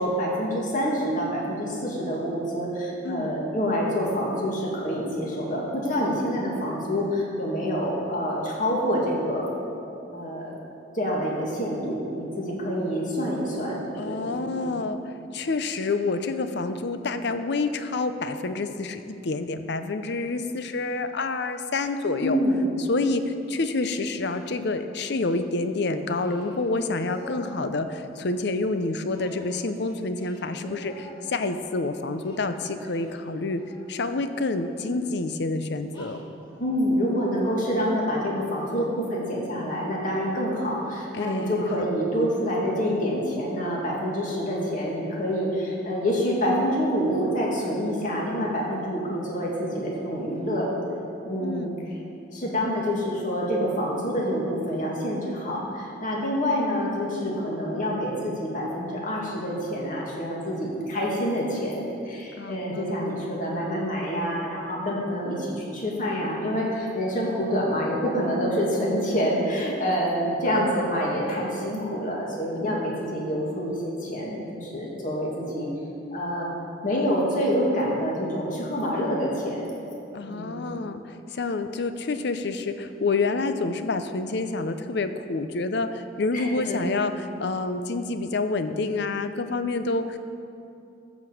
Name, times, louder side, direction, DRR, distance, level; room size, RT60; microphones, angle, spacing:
voice 1, 0.0-9.5 10.1-10.6 10.9-14.5 22.2-22.6 36.6-50.7 51.2-51.8 52.3-75.7 76.1-76.5 76.8-79.7 80.3-80.6 86.3-86.9, equal, 45° left, -4 dB, 2.4 m, -27 dB
voice 2, 3.0-3.4 14.0-22.4 22.9-33.6 33.9-36.2 41.2-41.6 51.4-51.8 57.2-57.4 62.4-63.1 72.5-73.2 80.1-90.2, left 3 dB, 65° left, 9 dB, 0.6 m, -28 dB
Singing, 26.1-27.8 29.1-31.7 32.1-33.9 34.7-35.0 35.9-36.6, equal, 25° left, 2.3 m, -45 dB
14.0 x 5.2 x 7.1 m, 2.7 s
head